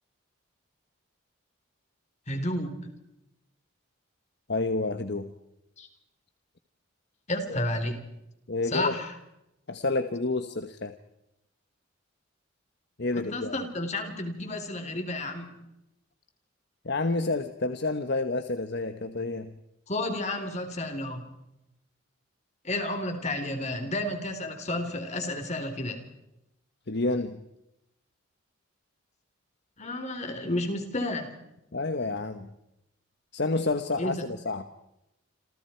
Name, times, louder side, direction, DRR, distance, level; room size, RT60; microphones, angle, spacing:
voice 1, 2.3-2.9 5.8-5.9 7.3-8.1 8.6-9.1 13.1-15.5 19.9-21.3 22.6-26.0 29.8-31.4 34.0-34.1, left 1 dB, 35° left, 6 dB, 3.8 m, -31 dB
voice 2, 4.5-5.3 8.5-8.9 9.7-10.9 13.0-13.5 16.8-19.6 26.9-27.5 31.7-32.5 33.3-34.7, left 3 dB, 55° left, 9 dB, 1.1 m, -29 dB
28.5 x 27.5 x 4.6 m, 0.87 s
head